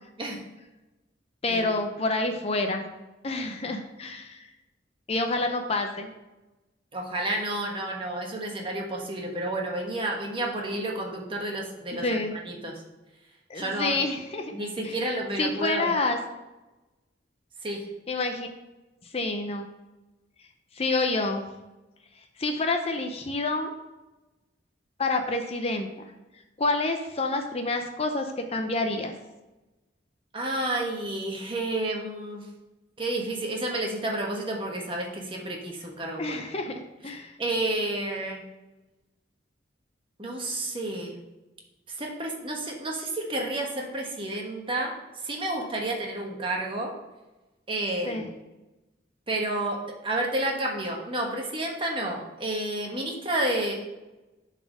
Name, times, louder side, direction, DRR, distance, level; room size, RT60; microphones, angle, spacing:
voice 1, 1.4-2.9 3.2-4.5 5.1-6.1 11.9-12.3 13.5-14.5 14.8-14.9 15.4-16.2 18.1-18.5 19.1-19.7 20.7-21.4 22.4-23.7 25.0-25.9 26.6-29.1 36.2-36.7 37.0-37.3 48.1-48.3, left 2 dB, 35° left, 5 dB, 0.6 m, -28 dB
voice 2, 6.9-12.7 13.5-14.0 14.5-15.9 17.6-17.8 30.3-32.4 33.0-36.4 37.4-38.4 40.2-41.2 42.0-44.9 45.2-46.9 47.7-48.3 49.3-53.7, right 1 dB, 25° right, 0 dB, 1.3 m, -30 dB
7.1 x 4.2 x 6.1 m, 1.0 s
head